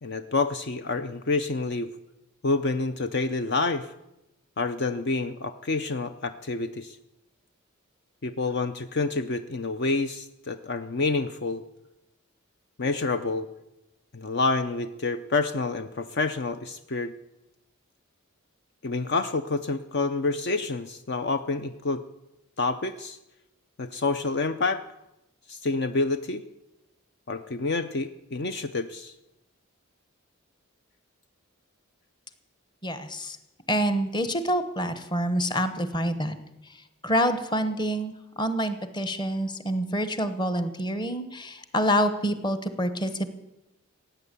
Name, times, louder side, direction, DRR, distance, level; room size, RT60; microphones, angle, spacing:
voice 1, 0.0-1.9 2.4-3.9 4.6-7.0 8.2-11.6 12.8-13.5 14.1-17.1 18.8-22.0 22.6-23.2 23.8-24.8 25.5-26.4 27.3-29.1, left 3 dB, 50° left, 10 dB, 0.6 m, -28 dB
voice 2, 32.8-33.4 33.7-36.4 37.0-43.3, equal, 20° left, 10 dB, 1.1 m, -27 dB
16.5 x 9.2 x 8.2 m, 0.93 s
head